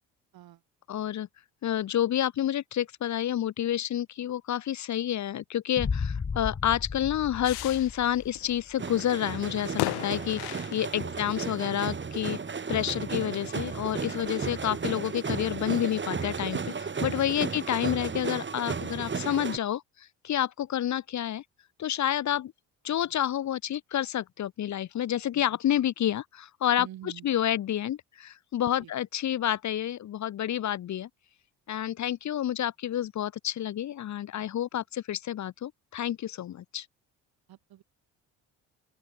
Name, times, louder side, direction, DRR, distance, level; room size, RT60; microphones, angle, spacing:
voice 1, 0.9-1.3 1.6-12.4 12.7-21.4 21.8-22.5 22.8-31.1 31.7-36.9, left 11 dB, 45° left, 0.9 m, -29 dB
sound 1, 5.8-8.7, left 5 dB, 30° left, 2.4 m, -34 dB
sound 2, 7.4-11.4 11.9-12.0 12.2-12.9 13.3-13.7, left 23 dB, 75° left, 1.1 m, -37 dB
sound 3, 8.8-19.6, right 5 dB, 30° right, 2.2 m, -34 dB
voice 2, 26.8-27.2 28.8-28.9 37.5-37.8, right 13 dB, 65° right, 5.4 m, -47 dB
open air
supercardioid pair, 65°, 39 cm